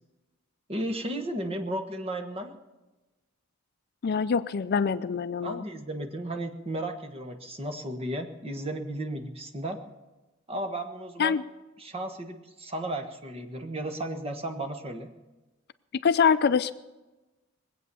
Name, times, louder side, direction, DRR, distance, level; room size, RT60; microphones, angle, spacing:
voice 1, 0.7-2.5 5.4-9.8 10.5-11.4 11.8-15.1, right 1 dB, 30° right, 6 dB, 1.4 m, -34 dB
voice 2, 4.0-5.6 11.2-11.4 16.0-16.7, left 6 dB, 50° left, 14 dB, 0.4 m, -24 dB
21.0 x 8.5 x 7.0 m, 1.1 s
head